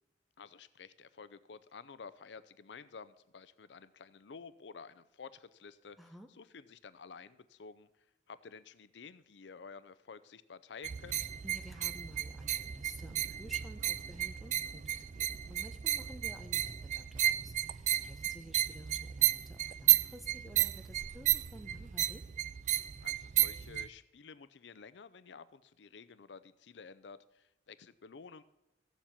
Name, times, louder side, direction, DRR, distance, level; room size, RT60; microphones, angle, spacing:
voice 1, 0.4-7.9 8.3-11.3 23.0-28.4, left 5 dB, 80° left, 15 dB, 0.6 m, -52 dB
voice 2, 6.0-6.3 11.4-22.2, equal, ahead, 6 dB, 1.1 m, -52 dB
sound 1, 10.8-23.9, right 12 dB, 45° right, 0.4 m, -33 dB
15.0 x 7.2 x 7.4 m, 0.98 s
head